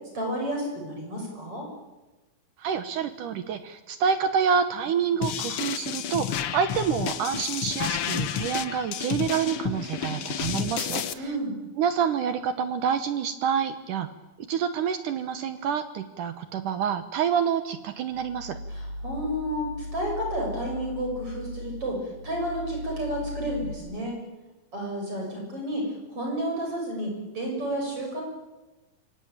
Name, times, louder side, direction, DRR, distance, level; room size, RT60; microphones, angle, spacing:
voice 1, 0.1-1.7 11.2-11.6 18.7-24.2 24.7-28.2, equal, 35° right, 1 dB, 7.2 m, -31 dB
voice 2, 2.6-11.4 11.8-14.1 14.4-18.6, right 7 dB, 70° right, 10 dB, 2.4 m, -27 dB
sound 1, 5.2-11.1, left 9 dB, 90° left, 1.2 m, -31 dB
sound 2, 18.1-23.7, left 1 dB, 70° left, 4.5 m, -38 dB
26.0 x 24.0 x 9.0 m, 1.1 s
omnidirectional pair, 4.2 m